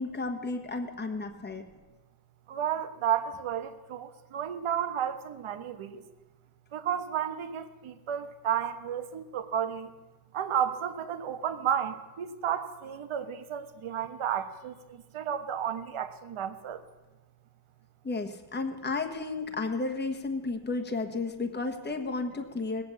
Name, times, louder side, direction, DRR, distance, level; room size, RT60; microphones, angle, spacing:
voice 1, 0.0-1.6 18.0-22.8, left 3 dB, 20° left, 5 dB, 1.3 m, -33 dB
voice 2, 2.5-6.0 6.7-9.9 10.3-16.8, right 9 dB, 75° right, 9 dB, 1.3 m, -32 dB
19.0 x 8.3 x 8.3 m, 1.2 s
wide cardioid pair, 155°, 49 cm